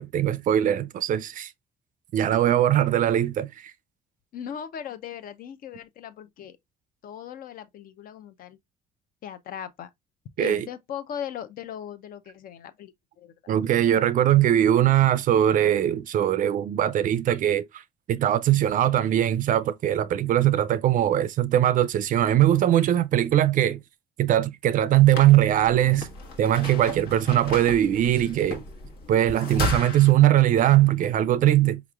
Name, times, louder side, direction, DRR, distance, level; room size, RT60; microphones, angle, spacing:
voice 1, 0.0-1.5 2.1-3.7 10.4-10.7 13.5-17.8 18.1-23.8 24.2-26.1 26.4-28.6 29.1-31.8, right 12 dB, 50° right, 0.4 m, -21 dB
voice 2, 4.3-6.6 7.0-8.6 9.2-9.9 10.4-13.3, left 9 dB, 55° left, 0.6 m, -38 dB
sound 1, 24.9-30.1, left 2 dB, 75° left, 1.3 m, -34 dB
5.0 x 2.9 x 2.3 m
cardioid pair, 110°, 17 cm